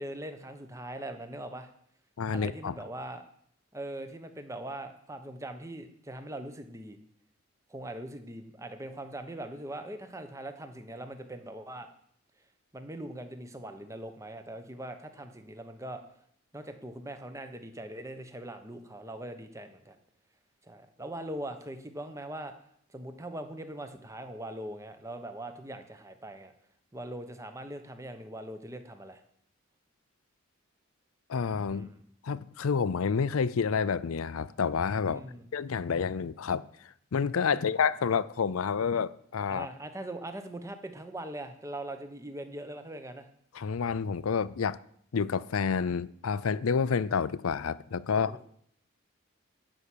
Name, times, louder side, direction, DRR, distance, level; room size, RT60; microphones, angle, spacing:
voice 1, 0.0-1.7 2.3-3.2 3.7-7.0 7.7-11.9 12.7-16.0 16.5-20.0 20.6-22.5 22.9-26.5 26.9-29.2 31.7-32.0 35.1-35.5 37.5-37.8 39.5-43.3 48.1-48.5, right 1 dB, 15° right, 1.0 m, -41 dB
voice 2, 2.2-2.7 31.3-31.9 32.2-35.2 35.5-36.6 37.1-39.7 43.5-44.8 45.1-48.3, left 6 dB, 80° left, 0.5 m, -29 dB
12.0 x 5.9 x 8.5 m
head